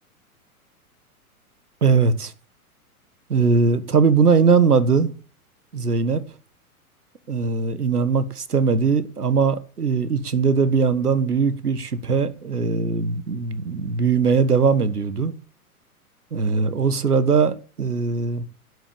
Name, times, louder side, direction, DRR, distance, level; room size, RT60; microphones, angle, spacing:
voice 1, 1.8-2.3 3.3-5.1 5.7-6.2 7.3-15.3 16.3-18.4, right 5 dB, 80° right, 1.6 m, -20 dB
12.0 x 8.1 x 7.2 m
figure-of-eight pair, 105°, 45 cm